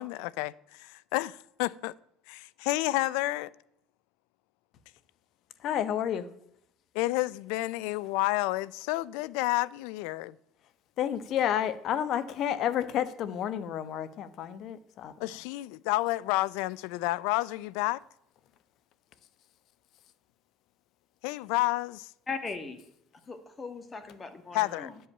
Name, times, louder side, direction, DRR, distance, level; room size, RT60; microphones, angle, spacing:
voice 1, 0.0-1.9 2.3-3.5 6.9-10.4 15.2-18.0 21.2-22.1 24.5-24.9, left 19 dB, 80° left, 0.4 m, -30 dB
voice 2, 5.6-6.3 11.0-15.1, left 10 dB, 60° left, 1.0 m, -30 dB
voice 3, 22.3-22.8 23.3-25.0, left 4 dB, 25° left, 1.9 m, -39 dB
10.0 x 5.5 x 8.5 m
supercardioid pair, 85°, 0 cm